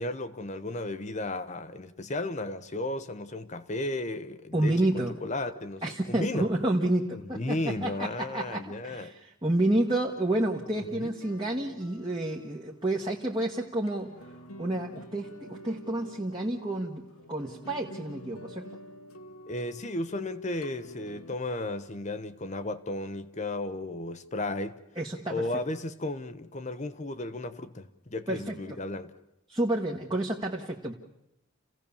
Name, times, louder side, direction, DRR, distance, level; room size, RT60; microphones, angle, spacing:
voice 1, 0.0-6.5 7.1-9.1 11.0-11.1 19.5-24.8 25.3-29.1, left 2 dB, 35° left, 0.9 m, -34 dB
voice 2, 4.5-5.1 5.8-14.1 14.6-18.7 25.0-25.5 28.3-28.8 29.5-30.9, right 1 dB, 20° right, 1.3 m, -30 dB
sound 1, 9.7-21.3, equal, 80° left, 1.5 m, -49 dB
29.0 x 16.5 x 7.1 m
head